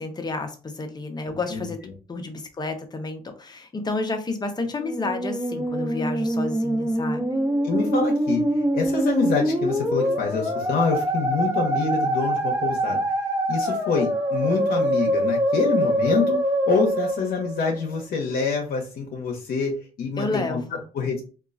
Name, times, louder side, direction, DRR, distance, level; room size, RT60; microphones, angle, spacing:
voice 1, 0.0-1.8 2.1-7.2 20.2-20.8, left 3 dB, 25° left, 5 dB, 0.7 m, -30 dB
Musical instrument, 4.7-18.0, right 1 dB, 20° right, 1.1 m, -24 dB
voice 2, 7.6-8.4 8.7-13.0 13.5-16.4 16.7-19.7 20.0-20.6 20.9-21.2, left 5 dB, 65° left, 0 dB, 0.7 m, -26 dB
2.9 x 2.4 x 2.5 m, 0.35 s
cardioid pair, 85°, 16 cm